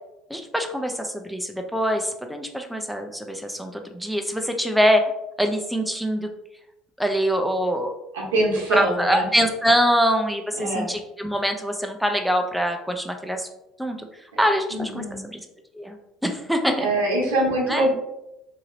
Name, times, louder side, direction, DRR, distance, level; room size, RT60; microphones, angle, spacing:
voice 1, 0.3-5.0 5.4-6.3 7.0-7.9 8.7-13.5 13.8-14.0 14.4-15.0 15.3-15.4 15.8-16.0 16.2-16.9 17.7-17.8, equal, ahead, 4 dB, 0.4 m, -24 dB
voice 2, 8.1-9.3 10.5-10.9 14.7-15.2 16.8-17.9, right 1 dB, 85° right, -2 dB, 0.9 m, -23 dB
2.8 x 2.8 x 2.6 m, 0.89 s
hypercardioid pair, 65°, 0 cm